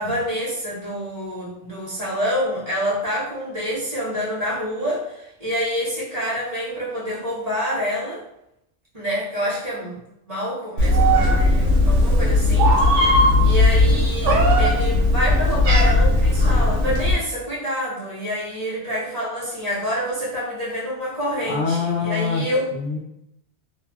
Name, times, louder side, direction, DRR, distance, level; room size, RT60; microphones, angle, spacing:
voice 1, 0.0-8.2 8.9-10.0 10.3-13.1 13.4-22.7, equal, 35° right, -9 dB, 1.0 m, -27 dB
Meow, 10.8-17.1, left 1 dB, 80° right, 0.9 m, -17 dB
voice 2, 13.1-13.6 21.4-22.4 22.7-23.0, left 5 dB, 75° left, -2 dB, 1.0 m, -26 dB
2.9 x 2.6 x 2.2 m, 0.82 s
omnidirectional pair, 1.2 m